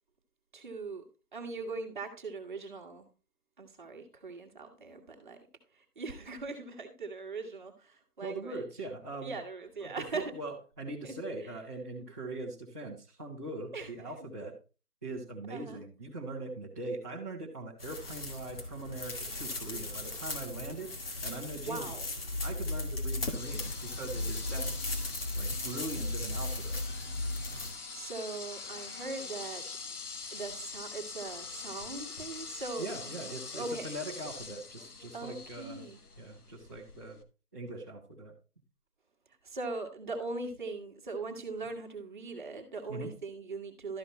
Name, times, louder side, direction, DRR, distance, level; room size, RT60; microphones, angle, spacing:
voice 1, 0.5-1.0 1.3-3.1 3.6-5.4 5.7-8.6 9.2-10.3 11.0-11.1 11.4-11.5 13.7-13.9 15.5-15.9 21.5-22.1 27.5-29.6 30.3-34.0 35.1-36.0 39.3-44.0, right 3 dB, 30° right, 3 dB, 1.6 m, -40 dB
voice 2, 8.2-9.4 9.8-14.6 15.0-20.9 21.2-21.9 22.4-24.7 25.3-27.0 32.8-35.9 36.2-37.2 37.5-38.3 42.9-43.1, right 2 dB, 10° right, -11 dB, 1.0 m, -41 dB
sound 1, 17.8-27.7, left 2 dB, 40° left, 2.1 m, -36 dB
sound 2, 23.3-37.2, left 4 dB, 70° left, 1.5 m, -44 dB
12.5 x 5.0 x 4.1 m, 0.34 s
figure-of-eight pair, 165°, 46 cm